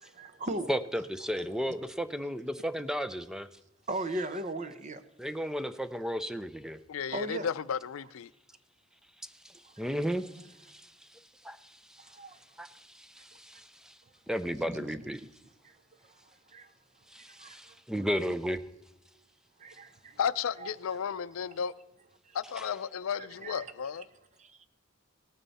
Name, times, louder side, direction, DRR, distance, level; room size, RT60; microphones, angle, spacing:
voice 1, 0.0-0.7 3.9-5.0 7.1-7.5 9.6-9.9 10.2-10.3 12.0-12.4 14.6-15.1 15.6-15.7 16.0-16.2 16.5-16.7 17.4-17.7 19.6-20.2 20.6-20.7 21.1-21.2 22.3-22.4 23.2-23.7 24.4-24.7, right 1 dB, 35° right, 0.8 m, -38 dB
voice 2, 0.7-3.5 5.2-6.8 9.2-12.2 12.6-14.0 14.3-15.2 17.1-18.6 22.6-22.7, equal, 5° right, 0.4 m, -35 dB
voice 3, 6.9-8.3 20.2-21.7 22.3-24.0, left 7 dB, 80° left, 0.4 m, -33 dB
18.0 x 9.0 x 4.1 m
head